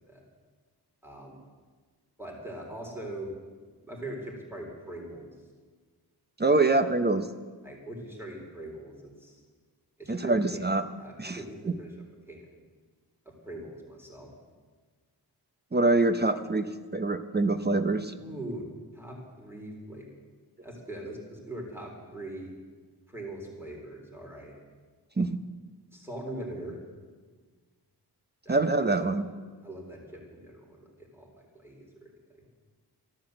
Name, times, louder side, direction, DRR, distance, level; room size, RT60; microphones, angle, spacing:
voice 1, 1.0-1.4 2.2-3.3 3.8-5.3 7.6-9.4 10.0-10.6 11.0-11.9 12.3-12.4 13.3-14.3 18.2-18.7 18.9-20.1 20.6-22.5 23.1-24.5 25.9-26.8 28.4-29.1 29.6-32.1 32.4-32.5, right 1 dB, 5° right, -1 dB, 3.9 m, -41 dB
voice 2, 6.4-7.3 10.1-10.8 11.2-11.4 15.7-18.1 25.2-25.4 28.5-29.2, right 2 dB, 25° right, 9 dB, 0.7 m, -25 dB
14.0 x 11.5 x 7.8 m, 1.4 s
wide cardioid pair, 115°, 41 cm